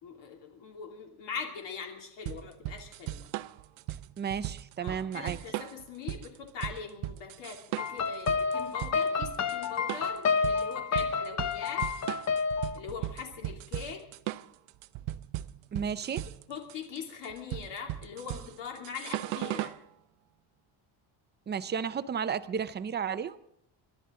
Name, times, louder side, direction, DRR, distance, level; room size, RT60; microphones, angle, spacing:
voice 1, 0.0-3.3 4.8-11.8 12.7-14.0 16.5-19.7, left 6 dB, 65° left, 1 dB, 2.9 m, -42 dB
sound 1, 2.3-19.8, right 15 dB, 85° right, 0.8 m, -37 dB
voice 2, 4.2-5.4 15.7-16.3 21.5-23.4, right 7 dB, 25° right, 13 dB, 0.5 m, -33 dB
sound 2, 7.8-12.8, left 5 dB, 35° left, 0.8 m, -30 dB
29.0 x 12.0 x 3.8 m, 0.78 s
cardioid pair, 175°, 47 cm